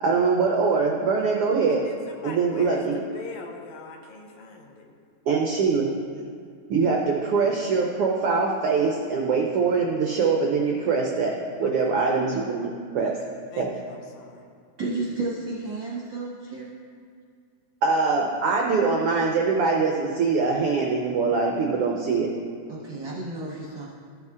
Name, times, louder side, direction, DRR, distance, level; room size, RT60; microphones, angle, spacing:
voice 1, 0.0-1.8 2.2-3.0 5.3-5.9 6.7-11.3 11.6-13.2 13.6-13.7 17.8-22.3, right 4 dB, 85° right, 0 dB, 1.2 m, -23 dB
voice 2, 1.7-4.9 11.6-12.0 13.0-13.1 13.5-14.5, left 4 dB, 75° left, 2 dB, 2.1 m, -43 dB
voice 3, 14.8-16.8 22.7-23.9, right 3 dB, 65° right, -5 dB, 1.2 m, -32 dB
14.0 x 5.4 x 3.6 m, 2.2 s
omnidirectional pair, 3.4 m